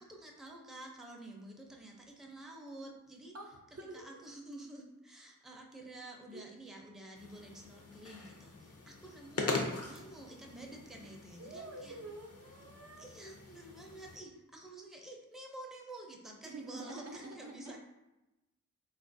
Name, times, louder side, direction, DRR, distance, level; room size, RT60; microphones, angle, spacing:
voice 1, 0.1-3.4 3.9-9.6 9.9-12.0 13.0-17.8, right 1 dB, ahead, -1 dB, 0.5 m, -50 dB
voice 2, 3.3-4.1 6.3-6.4 11.0-11.1 11.4-13.0 16.4-17.8, right 2 dB, 50° right, 1 dB, 0.5 m, -47 dB
sound 1, 7.1-14.2, left 3 dB, 50° left, 0.6 m, -42 dB
3.8 x 2.3 x 2.5 m, 0.99 s
wide cardioid pair, 65°, 31 cm